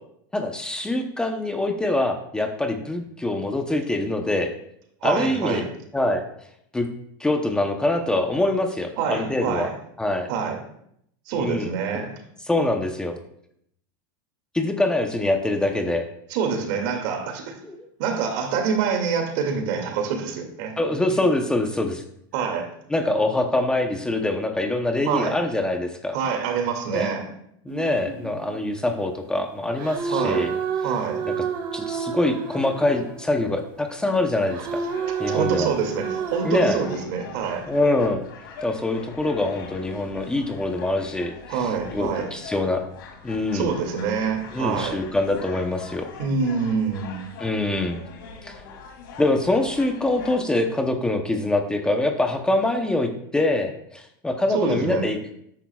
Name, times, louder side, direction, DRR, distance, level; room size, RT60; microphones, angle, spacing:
voice 1, 0.3-4.5 5.0-5.6 5.9-6.2 6.7-6.9 7.2-9.7 10.0-10.3 11.4-11.7 12.4-13.2 14.5-16.0 17.6-17.9 20.8-22.0 22.9-26.2 26.9-27.1 27.6-30.5 31.3-31.4 31.7-34.8 35.2-35.7 36.4-36.8 37.7-38.2 38.6-42.8 43.2-43.7 44.5-46.1 47.4-48.0 48.4-48.6 49.2-55.2, left 2 dB, 5° left, 4 dB, 0.8 m, -24 dB
voice 2, 5.0-5.7 9.0-9.7 10.3-10.6 11.3-12.1 16.3-17.6 18.0-20.7 22.3-22.7 25.0-25.4 26.1-27.3 30.1-30.5 30.8-31.2 35.3-37.7 41.5-42.3 43.5-45.0 46.2-47.3 54.5-55.1, right 6 dB, 60° right, 3 dB, 2.4 m, -26 dB
sound 1, 27.7-29.2 29.8-33.6 34.5-36.5, right 6 dB, 40° right, 1.4 m, -30 dB
sound 2, 34.9-50.4, left 5 dB, 80° left, 2.5 m, -42 dB
13.0 x 10.5 x 2.4 m, 0.72 s
supercardioid pair, 145°, 12 cm